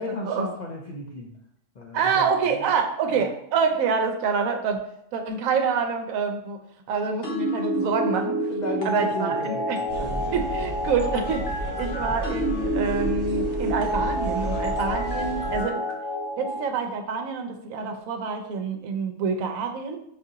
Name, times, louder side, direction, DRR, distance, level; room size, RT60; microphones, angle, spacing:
voice 1, 0.0-1.4 1.7-2.7 3.1-3.3 8.5-10.5, left 1 dB, 85° left, -1 dB, 0.3 m, -35 dB
voice 2, 1.9-4.8 5.1-6.6 6.9-8.4 8.8-9.8 10.3-15.8 16.4-20.0, right 5 dB, 75° right, 5 dB, 1.0 m, -27 dB
sound 1, 7.2-16.6, equal, 50° left, 0.9 m, -28 dB
sound 2, 9.9-15.6, right 2 dB, 30° left, 1.4 m, -33 dB
5.7 x 2.5 x 2.7 m, 0.74 s
omnidirectional pair, 1.5 m